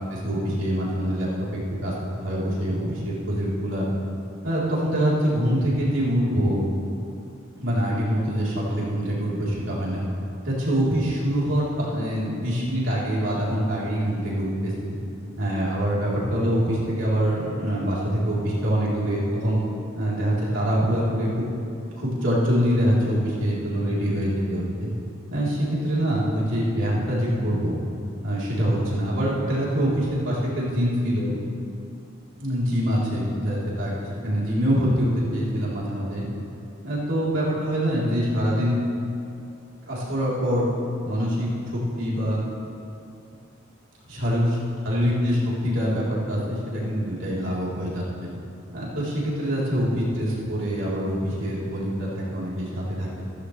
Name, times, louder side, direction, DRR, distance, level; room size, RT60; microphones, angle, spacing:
voice 1, 0.1-1.9 2.2-3.9 4.4-6.7 7.6-10.0 10.4-15.0 15.4-19.6 20.0-21.5 21.9-24.9 25.3-27.8 28.2-31.4 32.4-33.9 34.2-36.3 36.8-38.8 39.9-40.6 41.0-42.4 44.2-44.5 44.9-48.3 48.7-53.2, equal, 75° right, -7 dB, 3.5 m, -24 dB
15.0 x 14.5 x 3.3 m, 2.6 s
head